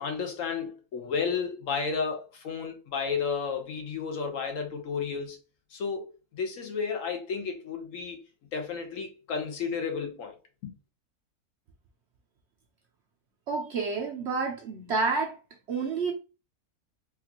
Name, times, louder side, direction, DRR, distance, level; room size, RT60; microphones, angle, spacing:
voice 1, 0.0-5.4 5.7-6.0 6.3-8.2 8.5-10.4 10.6-10.7, left 5 dB, 65° left, 1.0 m, -32 dB
voice 2, 13.5-15.4 15.7-16.1, right 4 dB, 60° right, 0.7 m, -29 dB
3.6 x 2.4 x 2.8 m
omnidirectional pair, 1.5 m